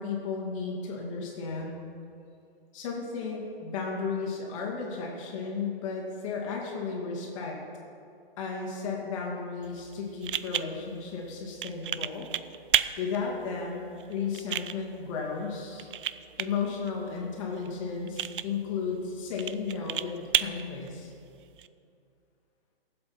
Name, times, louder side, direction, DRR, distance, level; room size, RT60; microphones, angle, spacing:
voice 1, 0.0-1.8 2.7-7.6 8.4-12.3 13.0-15.9 16.4-21.1, left 5 dB, 35° left, -1 dB, 2.4 m, -34 dB
sound 1, 9.6-21.7, right 10 dB, 60° right, 0.5 m, -34 dB
18.5 x 7.8 x 4.4 m, 2.4 s
hypercardioid pair, 155°, 29 cm